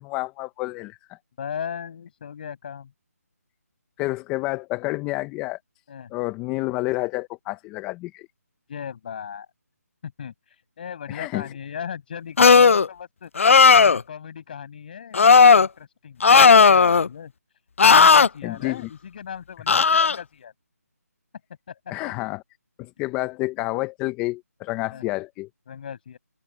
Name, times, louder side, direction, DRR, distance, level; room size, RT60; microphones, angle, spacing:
voice 1, 0.0-1.2 4.0-5.6 6.1-8.3 11.1-11.4 18.4-18.8 19.7-19.8 21.9-22.4 22.8-25.5, left 21 dB, 10° left, 0.8 m, -29 dB
voice 2, 1.4-2.9 5.9-6.1 8.7-9.5 10.0-10.3 10.8-17.3 17.8-20.5 21.7-21.8 24.9-25.0 25.7-26.2, left 8 dB, 35° left, 7.1 m, -37 dB
sound 1, 12.4-12.9 13.4-14.0 15.1-15.7 16.2-17.1 17.8-18.3 19.7-20.2, left 5 dB, 55° left, 0.4 m, -13 dB
open air
figure-of-eight pair, 165°, 9 cm